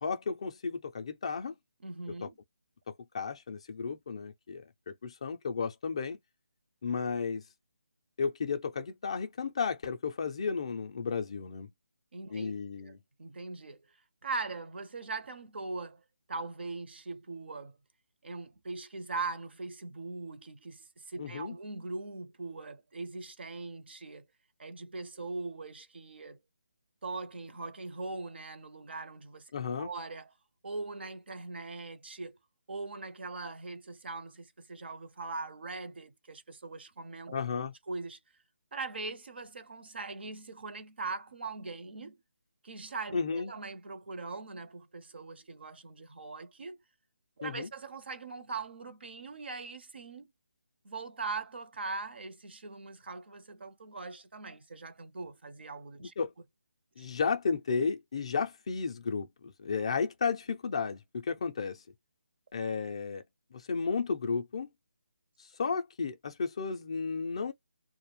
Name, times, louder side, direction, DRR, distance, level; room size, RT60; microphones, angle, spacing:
voice 1, 0.0-1.5 2.2-2.3 2.9-6.2 6.8-7.4 8.2-11.7 12.3-13.0 21.2-21.5 29.5-29.9 37.3-37.7 43.1-43.5 47.4-47.7 56.2-56.3 57.0-61.8 62.5-63.2 63.5-64.7 65.6-67.5, left 5 dB, 30° left, 0.3 m, -33 dB
voice 2, 1.8-2.4 12.1-13.8 14.2-16.0 16.3-17.8 18.2-24.3 24.6-26.4 27.0-29.5 29.8-30.3 30.6-32.4 32.7-37.3 37.9-38.2 38.7-42.2 42.6-46.8 47.4-50.3 50.8-56.1 57.0-57.1, right 3 dB, 60° right, 0.5 m, -41 dB
2.3 x 2.0 x 3.1 m
hypercardioid pair, 170°, 7 cm